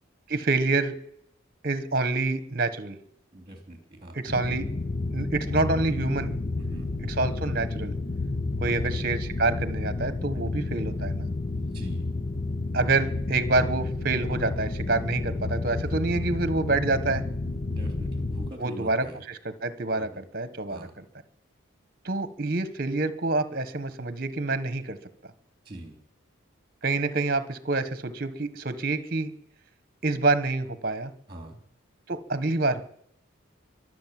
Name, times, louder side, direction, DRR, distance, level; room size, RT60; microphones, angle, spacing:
voice 1, 0.3-0.9 1.6-3.0 4.1-4.7 5.1-6.3 7.1-7.9 8.6-11.3 12.7-17.2 18.6-19.1 19.6-20.9 22.0-25.0 26.8-29.3 30.0-31.1 32.1-32.8, right 3 dB, 45° right, 13 dB, 1.4 m, -27 dB
voice 2, 3.3-4.2 6.6-6.9 8.6-9.0 11.5-12.1 15.9-16.0 17.7-19.2 20.0-20.2 20.7-20.9 25.7-26.0 31.3-31.6, right 1 dB, 25° right, 5 dB, 3.4 m, -43 dB
sound 1, 4.3-18.5, left 2 dB, 40° left, 0.7 m, -31 dB
23.5 x 7.8 x 7.7 m, 0.69 s
head